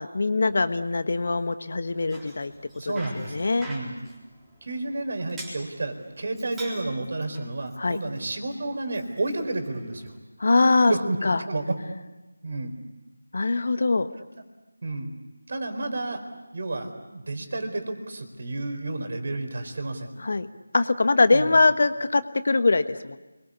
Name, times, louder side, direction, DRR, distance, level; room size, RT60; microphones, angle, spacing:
voice 1, 0.0-2.5 2.8-3.7 7.8-8.0 10.4-10.9 11.2-11.4 13.3-14.1 20.2-20.5 20.7-23.2, left 3 dB, 50° left, 11 dB, 1.3 m, -22 dB
Bicycle, 1.9-10.2, right 1 dB, 5° right, 3.9 m, -47 dB
voice 2, 2.8-4.0 4.6-10.1 10.9-11.2 11.5-11.7 12.4-12.7 14.8-15.1 15.5-16.2 16.5-20.1 21.3-21.6, right 2 dB, 45° right, 7 dB, 4.3 m, -31 dB
29.0 x 22.5 x 8.4 m, 1.1 s
figure-of-eight pair, 165°, 0 cm